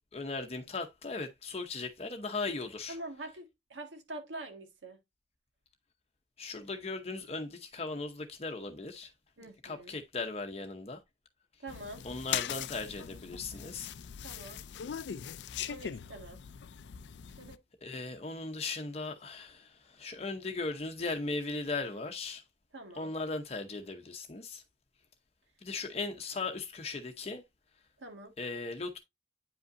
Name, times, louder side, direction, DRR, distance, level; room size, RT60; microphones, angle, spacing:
voice 1, 0.1-3.0 6.4-9.1 9.4-11.0 11.5-11.6 12.0-13.9 15.6-15.7 17.8-22.4 22.9-24.6 25.6-27.4 28.4-29.0, left 3 dB, 35° left, 0.7 m, -38 dB
voice 2, 2.9-5.0 9.4-9.9 11.6-12.0 14.2-14.6 15.7-16.4 17.4-17.6 22.7-23.1 28.0-28.3, right 2 dB, 90° right, 1.7 m, -45 dB
sound 1, 11.7-17.6, left 9 dB, 70° left, 0.4 m, -40 dB
9.0 x 5.4 x 2.5 m
head